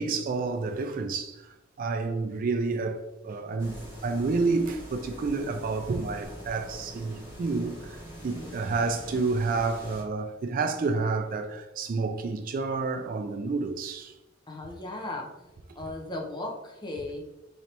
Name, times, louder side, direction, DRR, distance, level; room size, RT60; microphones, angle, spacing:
voice 1, 0.0-14.1, right 3 dB, 45° right, 0.3 m, -29 dB
sound 1, 3.6-10.0, equal, 10° right, 1.2 m, -44 dB
voice 2, 8.3-8.6 14.5-17.3, left 2 dB, 25° left, 0.6 m, -37 dB
3.9 x 3.3 x 2.8 m
head